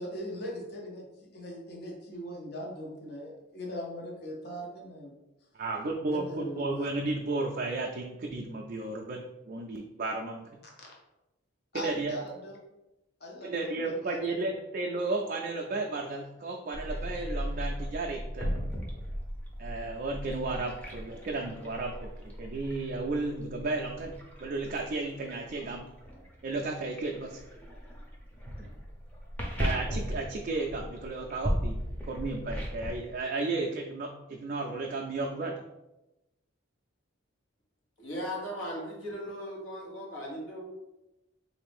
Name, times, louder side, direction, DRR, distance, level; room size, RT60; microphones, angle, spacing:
voice 1, 0.0-5.1 6.1-6.9 11.7-12.6 13.2-14.2, equal, 50° left, -2 dB, 0.7 m, -40 dB
voice 2, 5.5-10.5 11.7-12.2 13.4-18.5 19.6-25.9 26.4-27.4 29.6-31.8 32.1-35.5, right 3 dB, 45° right, 0 dB, 0.3 m, -33 dB
sound 1, 16.7-33.1, equal, 10° left, 0.6 m, -37 dB
voice 3, 38.0-40.6, equal, 85° left, -3 dB, 1.2 m, -37 dB
3.8 x 2.5 x 3.4 m, 0.97 s
head